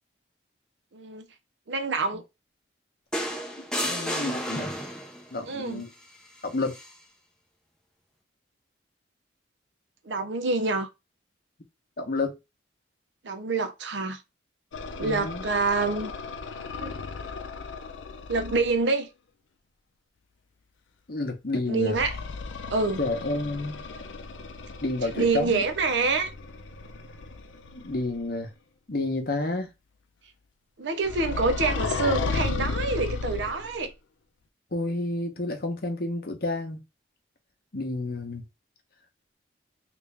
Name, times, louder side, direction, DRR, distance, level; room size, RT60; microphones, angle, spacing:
voice 1, 0.9-1.2 1.7-2.2 5.5-5.8 10.0-10.9 13.2-14.2 15.0-16.1 16.8-16.9 18.3-19.1 21.7-22.2 22.7-23.0 25.2-26.3 30.8-33.9, right 3 dB, 75° right, 0.6 m, -26 dB
sound 1, 3.1-5.3 6.7-6.9, equal, 5° left, 0.5 m, -31 dB
voice 2, 3.8-4.8 5.3-5.9 6.4-6.8 12.0-12.4 15.0-15.5 21.1-22.0 23.0-23.9 24.8-25.6 27.7-28.5 28.9-29.7 34.7-36.8 37.7-38.4, left 2 dB, 50° left, 0.8 m, -30 dB
sound 2, 14.7-18.8 21.9-28.2 31.0-33.9, left 4 dB, 85° left, 0.5 m, -35 dB
3.4 x 2.5 x 3.2 m
head